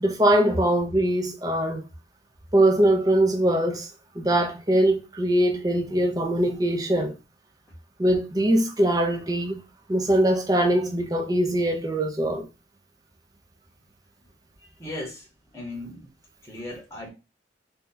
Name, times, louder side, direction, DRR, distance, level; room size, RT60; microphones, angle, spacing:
voice 1, 0.0-1.8 2.5-3.9 4.2-7.1 8.0-9.6 9.9-12.4, right 1 dB, 20° right, 0.5 m, -22 dB
voice 2, 14.6-15.3 15.5-16.1 16.4-17.1, left 1 dB, 15° left, 0.9 m, -36 dB
2.7 x 2.3 x 3.7 m
head